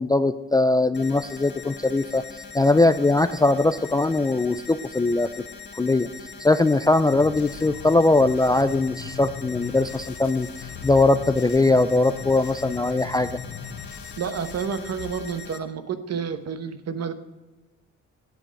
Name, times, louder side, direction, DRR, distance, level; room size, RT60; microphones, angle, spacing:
voice 1, 0.0-2.2 2.5-5.3 5.8-6.1 6.4-10.5 10.8-13.3, left 2 dB, 15° left, 11 dB, 0.3 m, -20 dB
sound 1, 0.9-15.6, left 5 dB, 35° left, 1.7 m, -42 dB
sound 2, 7.1-15.1, left 7 dB, 70° left, 1.0 m, -39 dB
voice 2, 14.2-17.1, right 6 dB, 55° right, 10 dB, 1.0 m, -30 dB
9.9 x 7.7 x 5.2 m, 1.2 s
cardioid pair, 90°, 30 cm